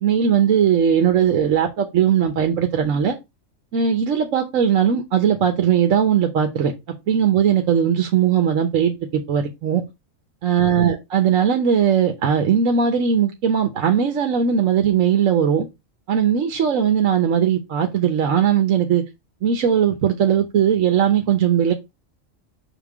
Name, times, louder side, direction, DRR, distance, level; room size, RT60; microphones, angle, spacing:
voice 1, 0.0-3.2 3.7-6.7 7.1-9.8 10.4-15.7 16.1-19.0 19.4-21.7, right 8 dB, 75° right, 1.3 m, -19 dB
6.4 x 3.7 x 4.8 m
omnidirectional pair, 1.4 m